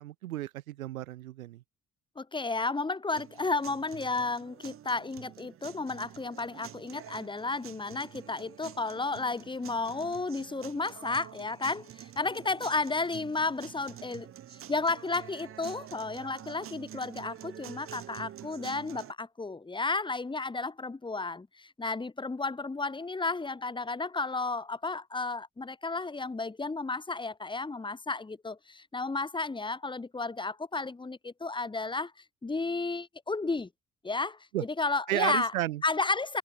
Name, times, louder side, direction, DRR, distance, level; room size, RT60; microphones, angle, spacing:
voice 1, 0.0-1.6 34.5-34.6 35.1-35.8, right 15 dB, 80° right, 0.8 m, -33 dB
voice 2, 2.2-14.3 14.7-32.1 32.4-33.7 34.0-35.5 35.8-36.4, left 3 dB, 10° left, 0.9 m, -32 dB
sound 1, 3.1-19.1, right 11 dB, 35° right, 0.6 m, -48 dB
figure-of-eight pair, 45°, 41 cm